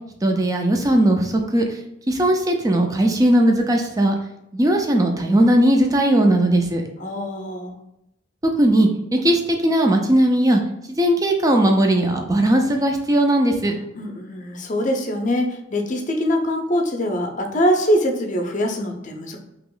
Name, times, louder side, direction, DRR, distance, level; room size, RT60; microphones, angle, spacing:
voice 1, 0.2-1.6 2.1-4.1 4.5-6.8 8.6-10.6 11.0-13.7, right 1 dB, 15° right, 3 dB, 0.4 m, -18 dB
voice 2, 7.0-7.8 13.9-19.4, equal, 40° left, 3 dB, 0.6 m, -23 dB
2.9 x 2.9 x 3.8 m, 0.88 s
head